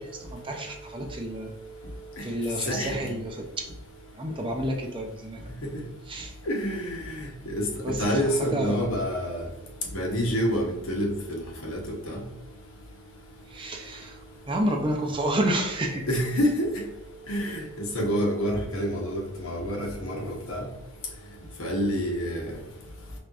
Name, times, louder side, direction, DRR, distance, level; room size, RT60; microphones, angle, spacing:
voice 1, 0.0-1.5 2.2-3.5 4.1-5.4 6.1-6.3 7.8-8.9 13.5-14.2 14.5-16.1, right 1 dB, 25° right, 2 dB, 0.5 m, -30 dB
voice 2, 6.5-6.9 7.5-7.6 8.0-9.4 9.9-11.8 12.1-12.2 16.1-16.7 17.3-17.6 17.9-20.6 21.6-22.4, equal, 80° left, 0 dB, 1.1 m, -27 dB
4.4 x 3.4 x 2.5 m, 0.93 s
head